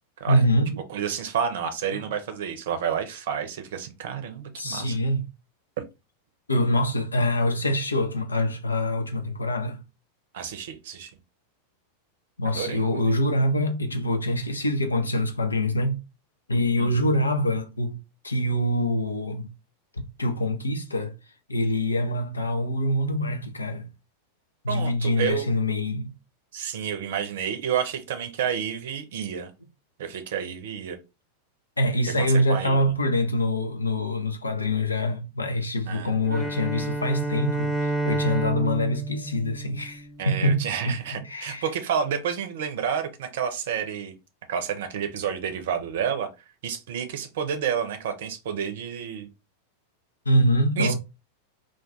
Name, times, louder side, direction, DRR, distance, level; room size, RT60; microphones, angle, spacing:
voice 1, 0.3-0.8 1.9-2.0 4.6-5.3 6.5-9.8 12.4-16.0 16.5-18.0 18.2-19.5 19.9-21.1 21.5-23.9 24.6-26.1 31.8-41.7 50.3-50.9, left 1 dB, 80° left, 0.5 m, -25 dB
voice 2, 0.9-5.0 10.3-11.1 12.4-13.0 16.8-16.9 24.7-25.5 26.5-29.5 30.0-31.0 32.2-32.8 35.9-36.5 40.2-44.1 44.5-46.3 46.6-49.3 50.8-50.9, right 8 dB, 55° right, 0.6 m, -30 dB
Bowed string instrument, 36.3-40.5, right 2 dB, ahead, 0.7 m, -30 dB
2.5 x 2.3 x 3.8 m
figure-of-eight pair, 90°, 0 cm